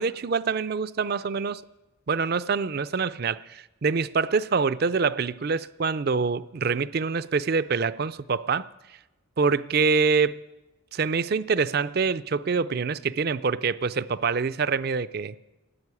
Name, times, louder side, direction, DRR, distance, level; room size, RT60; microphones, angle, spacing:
voice 1, 0.0-1.6 2.1-8.7 9.4-10.4 10.9-15.4, right 5 dB, 45° right, 0.4 m, -25 dB
14.0 x 8.9 x 9.7 m
head